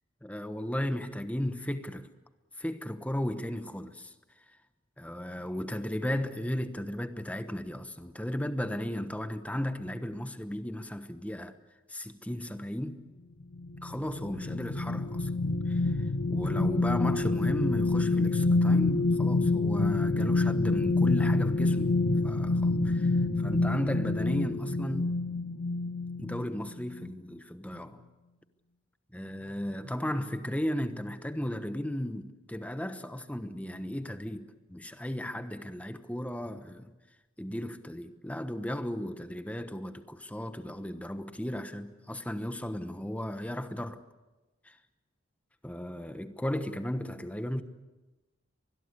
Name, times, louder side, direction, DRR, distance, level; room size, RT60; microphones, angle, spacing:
voice 1, 0.2-2.1 2.6-4.1 5.0-11.5 11.9-13.0 13.8-15.3 15.7-15.9 16.3-25.1 26.2-28.0 29.1-36.9 37.4-44.0 44.6-44.8 45.6-47.6, equal, 5° left, 1.1 m, -35 dB
sound 1, 13.5-26.5 26.9-27.1, left 3 dB, 80° left, 1.1 m, -27 dB
24.5 x 21.0 x 8.3 m
head